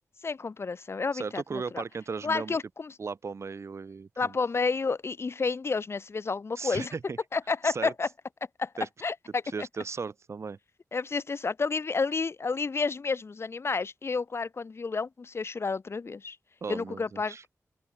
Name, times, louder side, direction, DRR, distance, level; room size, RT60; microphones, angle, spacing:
voice 1, 0.2-1.8 2.2-2.9 4.2-6.9 7.3-8.1 8.6-8.7 9.0-9.4 10.9-16.4 16.7-17.5, left 4 dB, 45° left, 1.7 m, -30 dB
voice 2, 1.1-2.6 3.0-4.3 6.6-7.2 7.6-7.9 8.8-8.9 9.5-10.6 16.6-17.4, right 5 dB, 55° right, 1.3 m, -36 dB
open air
wide cardioid pair, 120°, 6 cm